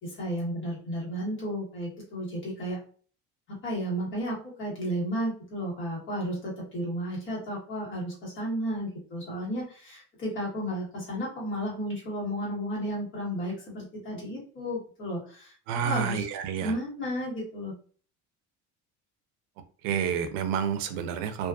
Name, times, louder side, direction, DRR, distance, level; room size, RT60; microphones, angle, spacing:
voice 1, 0.0-2.8 3.5-15.5 15.8-16.3 16.6-17.7, equal, 40° left, -4 dB, 1.3 m, -33 dB
voice 2, 15.7-16.7 19.8-21.5, right 8 dB, 85° right, 9 dB, 0.5 m, -29 dB
2.5 x 2.5 x 2.3 m, 0.42 s
cardioid pair, 170°, 32 cm